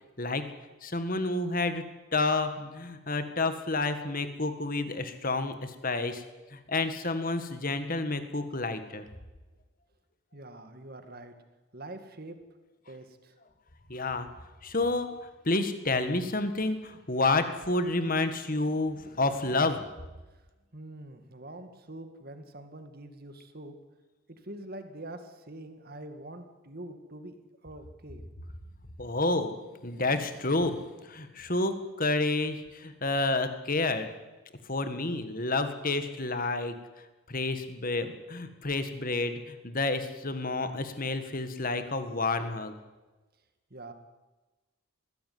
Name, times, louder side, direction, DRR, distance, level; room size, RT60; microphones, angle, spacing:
voice 1, 0.2-0.5 0.8-1.8 2.1-6.2 6.5-9.0 13.9-14.3 14.6-19.8 29.0-29.5 29.8-34.1 34.7-36.7 37.3-42.7, left 2 dB, 40° left, 9 dB, 1.8 m, -29 dB
voice 2, 10.3-11.3 11.7-12.4 12.9-13.3 20.3-20.4 20.7-23.8 24.3-28.3 43.7-43.9, right 1 dB, 45° right, 8 dB, 2.1 m, -45 dB
21.0 x 15.5 x 9.5 m, 1.2 s
head